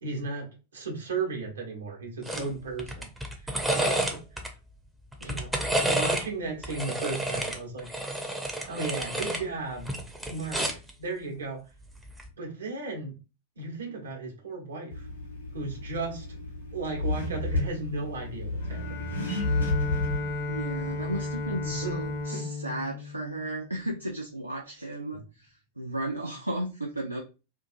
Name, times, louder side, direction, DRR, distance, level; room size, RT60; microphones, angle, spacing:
voice 1, 0.0-3.1 3.4-4.2 5.2-5.5 5.8-7.9 8.7-9.9 10.2-11.6 12.4-13.2 13.6-15.1 15.5-16.4 16.7-18.8 21.6-22.0 22.3-22.5 25.1-25.2, right 3 dB, 70° right, 0 dB, 0.9 m, -35 dB
sound 1, 2.3-2.5 2.8-4.5 5.1-6.3 6.6-9.4 9.8-10.9 12.1-12.3, right 1 dB, 5° right, 0.5 m, -30 dB
Accelerating revving vroom, 14.9-22.2, left 2 dB, 85° left, 0.9 m, -33 dB
Bowed string instrument, 18.6-24.1, left 2 dB, 55° left, 0.7 m, -35 dB
voice 2, 20.5-27.2, right 1 dB, 85° right, 0 dB, 0.4 m, -34 dB
2.7 x 2.4 x 2.5 m, 0.31 s
figure-of-eight pair, 90°, 0 cm